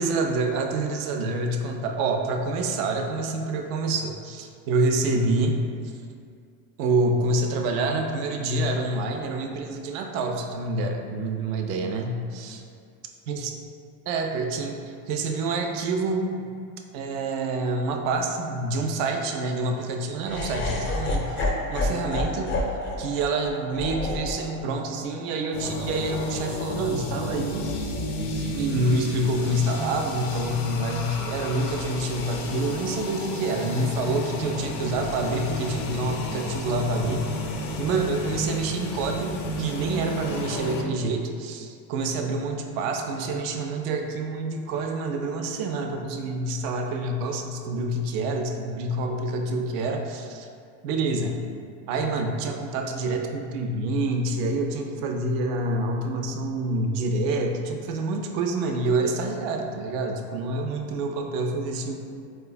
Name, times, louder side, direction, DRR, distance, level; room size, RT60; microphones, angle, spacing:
voice 1, 0.0-5.6 6.8-12.6 13.3-13.5 14.1-16.5 16.9-22.6 23.0-28.0 28.4-37.4 37.8-50.5 50.8-51.3 51.9-61.9, right 2 dB, 70° right, 3 dB, 0.5 m, -27 dB
Laughter, 20.2-26.4, left 2 dB, 30° left, 0.4 m, -30 dB
sound 1, 25.5-40.8, left 1 dB, 80° left, 0.6 m, -32 dB
4.1 x 2.3 x 2.2 m, 2.2 s
supercardioid pair, 95°, 42 cm